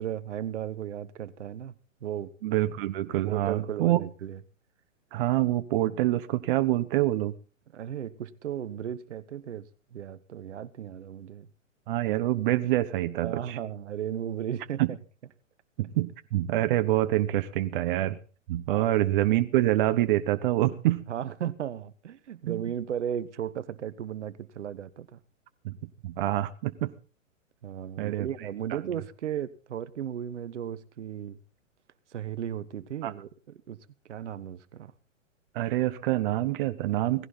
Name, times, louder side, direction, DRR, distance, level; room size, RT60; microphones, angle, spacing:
voice 1, 0.0-1.7 2.0-2.3 3.3-4.4 7.7-11.5 13.2-14.8 18.7-18.9 21.1-25.2 27.6-31.4 32.1-33.8 34.1-34.9, right 10 dB, 65° right, 1.3 m, -35 dB
voice 2, 2.4-4.0 5.1-7.3 11.9-13.6 14.8-14.9 15.8-18.2 18.5-21.0 22.5-22.6 25.6-25.7 26.0-26.9 28.0-28.3 28.7-28.8 33.0-33.1 35.5-37.3, right 15 dB, 40° right, 1.0 m, -26 dB
18.0 x 16.0 x 4.0 m
hypercardioid pair, 120°, 39 cm